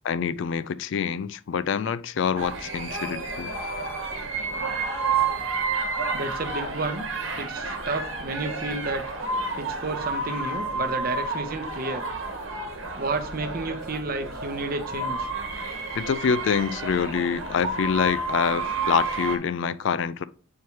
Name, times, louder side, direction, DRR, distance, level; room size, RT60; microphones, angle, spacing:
voice 1, 0.0-3.5 15.9-20.2, left 6 dB, 55° left, 0.3 m, -26 dB
sound 1, 2.4-19.4, right 3 dB, 65° right, 1.2 m, -30 dB
voice 2, 6.1-7.1 7.4-9.0 9.5-12.0 13.0-15.3, right 2 dB, 40° right, 0.7 m, -31 dB
8.2 x 4.7 x 3.0 m
head